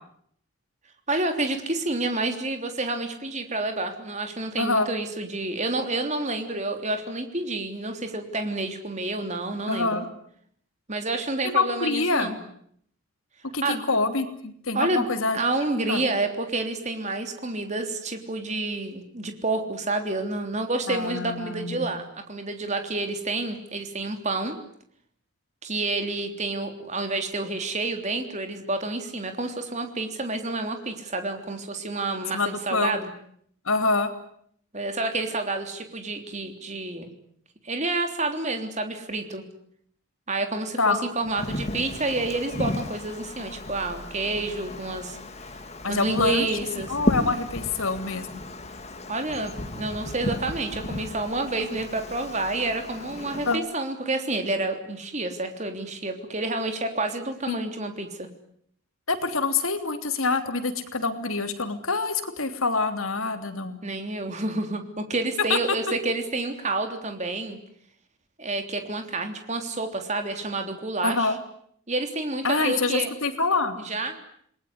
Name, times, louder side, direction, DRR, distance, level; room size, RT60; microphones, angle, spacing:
voice 1, 1.1-9.9 10.9-12.4 13.6-13.8 14.7-15.1 15.3-24.6 25.6-33.1 34.7-37.1 37.6-39.4 40.3-45.2 45.9-47.0 49.1-58.3 63.8-67.6 68.4-71.3 71.9-73.1 73.8-74.1, right 2 dB, 30° right, 6 dB, 3.4 m, -29 dB
voice 2, 4.6-4.9 9.7-10.1 11.4-12.3 13.5-15.4 15.9-16.0 20.9-21.9 32.3-33.0 33.6-34.1 40.8-41.0 45.8-46.5 46.9-48.3 53.5-53.6 57.5-57.6 59.1-63.8 65.4-65.8 71.0-71.4 72.4-73.8, left 3 dB, 70° left, 8 dB, 3.2 m, -26 dB
Wind, 41.2-53.6, left 1 dB, 30° left, 2.5 m, -34 dB
28.5 x 20.5 x 9.6 m, 0.67 s
head